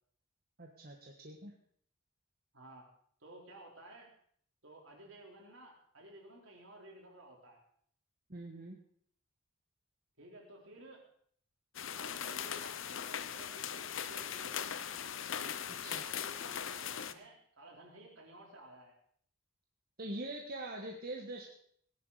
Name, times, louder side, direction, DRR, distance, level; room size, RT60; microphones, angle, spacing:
voice 1, 0.6-1.5 8.3-8.8 15.7-16.0 20.0-21.4, right 1 dB, 45° right, 0 dB, 1.5 m, -43 dB
voice 2, 2.5-2.9 3.2-4.1 4.6-7.6 10.2-11.0 11.9-15.0 15.7-19.0, right 1 dB, 70° right, 0 dB, 4.0 m, -55 dB
sound 1, 11.7-17.1, left 8 dB, 65° left, 0.8 m, -40 dB
18.0 x 11.0 x 4.9 m, 0.62 s
head